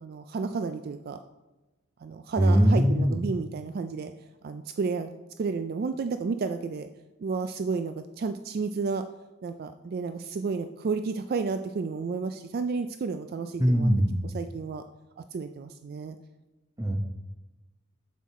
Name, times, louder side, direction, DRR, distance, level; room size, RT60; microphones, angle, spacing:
voice 1, 0.0-1.2 2.0-4.1 4.4-5.1 5.4-6.9 7.2-9.0 9.4-13.9 14.2-14.8 15.2-16.2, right 4 dB, 50° right, 9 dB, 0.3 m, -31 dB
voice 2, 2.4-3.2 13.6-14.2 16.8-16.9, equal, 15° right, 4 dB, 0.8 m, -21 dB
7.4 x 6.3 x 4.1 m, 1.1 s
head